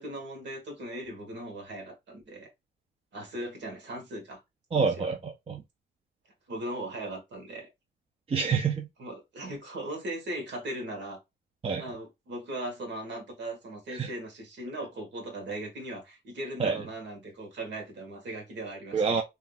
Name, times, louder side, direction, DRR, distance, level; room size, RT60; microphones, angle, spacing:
voice 1, 0.0-2.5 3.1-4.4 4.7-5.1 6.5-7.7 9.0-11.2 11.7-19.2, right 1 dB, 65° right, 1.4 m, -38 dB
voice 2, 4.7-5.6 8.3-8.9 11.6-11.8 13.9-14.1 16.6-16.8 18.9-19.2, right 5 dB, 30° right, 0.5 m, -27 dB
3.4 x 2.8 x 2.3 m
cardioid pair, 90°, 20 cm